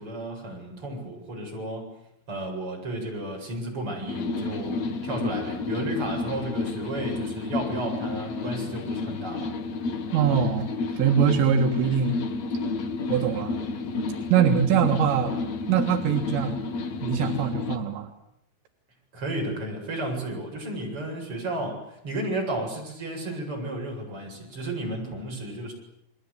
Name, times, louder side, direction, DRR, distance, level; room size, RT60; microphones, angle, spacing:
voice 1, 0.0-1.9 2.3-4.8 5.0-9.5 19.1-25.7, right 1 dB, 30° right, 1 dB, 8.7 m, -33 dB
sound 1, 4.1-17.8, left 3 dB, 50° left, 2.2 m, -31 dB
voice 2, 10.1-10.7 10.9-12.2 13.1-13.6 14.3-15.3 15.7-16.6 17.0-18.1, right 7 dB, 80° right, 3 dB, 3.9 m, -23 dB
30.0 x 22.0 x 8.4 m, 0.77 s
omnidirectional pair, 5.0 m